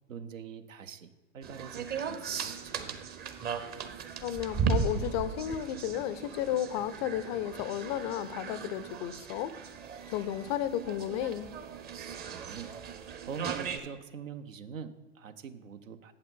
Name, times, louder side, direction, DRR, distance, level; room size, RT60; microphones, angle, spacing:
voice 1, 0.1-3.0 12.2-12.8 13.2-16.1, right 6 dB, 85° right, 11 dB, 0.7 m, -44 dB
sound 1, 1.4-13.8, right 6 dB, 25° right, 0.6 m, -37 dB
voice 2, 4.2-9.5 10.1-11.5, left 11 dB, 35° left, 14 dB, 0.4 m, -33 dB
8.6 x 7.8 x 3.7 m, 1.2 s
hypercardioid pair, 100°, 38 cm